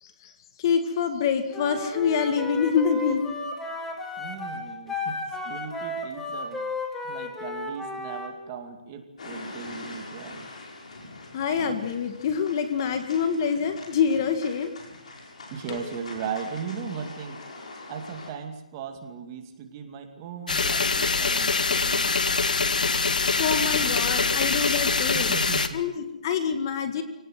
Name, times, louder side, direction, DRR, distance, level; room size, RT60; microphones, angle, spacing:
voice 1, 0.0-0.3 0.6-3.3 11.3-14.7 15.7-15.8 22.5-25.3 25.7-27.0, left 6 dB, 30° left, 8 dB, 1.9 m, -26 dB
Wind instrument woodwind instrument, 1.5-8.3, left 2 dB, 5° left, 2.4 m, -34 dB
voice 2, 4.2-6.6 7.0-10.5 15.5-17.4 17.9-22.1 25.1-25.8, right 6 dB, 25° right, 5 dB, 2.5 m, -37 dB
sound 1, 9.2-18.3, left 2 dB, 55° left, 7.5 m, -43 dB
sound 2, 20.5-25.7, left 4 dB, 75° left, 1.9 m, -24 dB
27.0 x 18.5 x 7.9 m, 0.93 s
hypercardioid pair, 165°, 4 cm